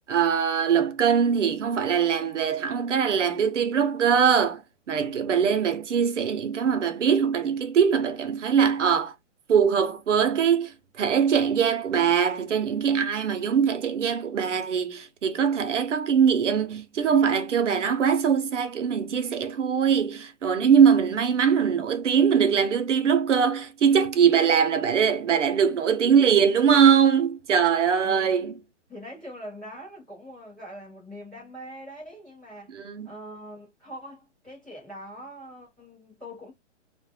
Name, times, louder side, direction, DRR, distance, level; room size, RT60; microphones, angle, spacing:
voice 1, 0.1-4.6 4.9-9.1 9.5-28.5 32.7-33.1, right 7 dB, 75° right, 0.9 m, -22 dB
voice 2, 25.8-26.7 27.9-28.4 28.9-36.5, equal, ahead, 0.7 m, -43 dB
3.2 x 2.5 x 2.2 m
hypercardioid pair, 180°, 36 cm